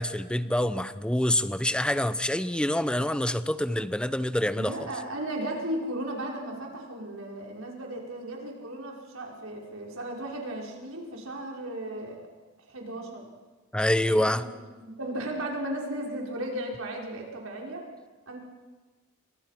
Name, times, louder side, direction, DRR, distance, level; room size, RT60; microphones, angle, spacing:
voice 1, 0.0-4.9 13.7-14.5, left 1 dB, 5° left, 13 dB, 0.8 m, -26 dB
voice 2, 4.6-12.2 12.7-13.3 14.0-17.8 18.3-18.4, right 1 dB, 75° right, 0 dB, 5.4 m, -35 dB
29.5 x 24.0 x 5.9 m, 1.3 s
head